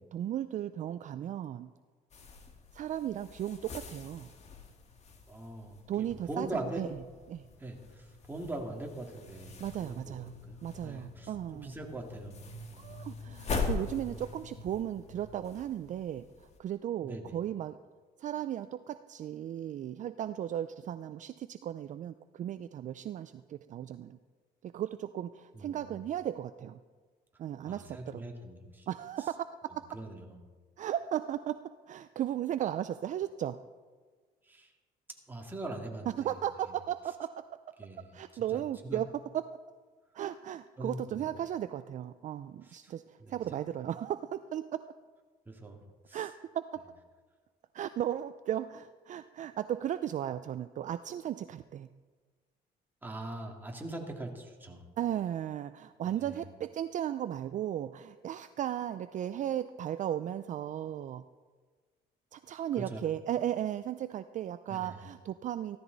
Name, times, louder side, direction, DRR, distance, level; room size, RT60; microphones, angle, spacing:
voice 1, 0.0-1.7 2.7-4.3 5.9-6.9 7.3-7.5 9.6-10.3 10.6-11.7 12.8-16.2 16.6-17.8 18.2-24.2 24.6-26.8 27.4-28.2 28.9-29.3 30.8-31.6 31.9-33.6 36.2-37.5 38.1-39.1 39.3-39.4 40.1-44.8 46.1-46.8 47.7-51.9 55.0-61.2 62.3-65.8, right 11 dB, 45° right, 12 dB, 0.4 m, -36 dB
sound 1, 2.1-16.6, left 4 dB, 40° left, 1.8 m, -42 dB
voice 2, 5.3-6.8 7.6-11.3 11.6-12.4 12.7-12.9 17.0-17.2 25.5-25.9 27.6-28.9 29.9-30.4 34.4-34.7 35.3-36.3 37.8-38.1 38.3-39.0 40.8-41.3 42.6-42.9 43.2-43.6 45.5-45.8 46.1-46.2 53.0-54.9 56.0-56.4 62.8-63.0 64.7-65.0, right 2 dB, 10° right, 1 dB, 2.3 m, -42 dB
15.5 x 13.5 x 4.0 m, 1.4 s
cardioid pair, 110°, 17 cm